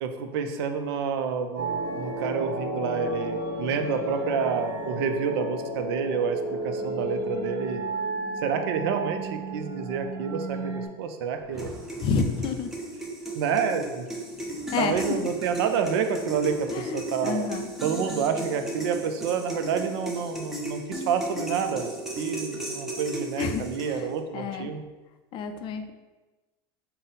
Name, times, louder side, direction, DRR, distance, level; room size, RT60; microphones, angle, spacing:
voice 1, 0.0-7.8 8.4-11.7 13.3-14.1 14.8-17.5 17.8-21.9 22.2-24.8, right 6 dB, 80° right, 7 dB, 0.4 m, -29 dB
sound 1, 1.6-10.9, right 2 dB, 60° right, 0.9 m, -32 dB
Rain, 11.2-20.3, right 1 dB, 25° right, 1.0 m, -53 dB
sound 2, 11.6-24.2, right 1 dB, 5° right, 0.6 m, -35 dB
voice 2, 12.0-12.7 14.7-15.3 16.7-17.7 23.4-24.1 24.3-24.7 25.3-25.9, left 5 dB, 40° left, 7 dB, 0.4 m, -29 dB
3.9 x 2.0 x 3.9 m, 1.2 s
supercardioid pair, 115°, 13 cm